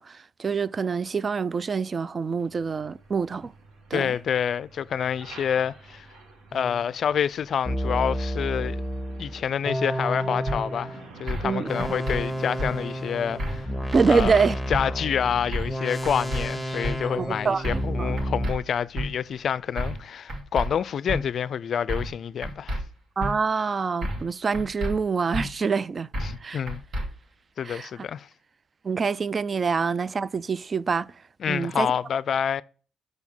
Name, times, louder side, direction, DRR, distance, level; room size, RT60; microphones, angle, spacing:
voice 1, 0.0-3.5 3.9-4.2 11.4-11.7 13.9-14.6 17.2-18.1 23.2-26.1 26.4-26.6 27.6-28.0 28.8-31.1 31.5-31.9, right 5 dB, 40° right, 0.3 m, -26 dB
Truck, 2.4-20.0, right 3 dB, 80° right, 2.0 m, -49 dB
voice 2, 3.9-6.1 6.5-8.8 9.2-13.7 14.1-14.4 14.7-22.8 26.2-26.8 27.6-28.3 31.4-32.6, left 8 dB, 60° left, 0.3 m, -27 dB
sound 1, 6.5-6.8 7.6-11.0 11.7-18.5, equal, ahead, 1.5 m, -31 dB
sound 2, 10.5-10.6 11.3-11.5 11.8-12.2 12.6-12.7 13.4-13.7 13.9-14.3 14.7-14.8 15.5-15.8 16.0-16.4 16.8-17.0 17.6-17.9 18.2-18.6 19.0-19.1 19.8-20.0 20.3-20.7 21.1-21.2 21.9-22.2 22.4-22.8 23.2-23.3 24.0-24.3 24.5-24.9 25.3-25.5 26.1-26.4 26.7-27.1, equal, 60° right, 1.8 m, -29 dB
6.3 x 5.0 x 5.3 m
cardioid pair, 90°, 0 cm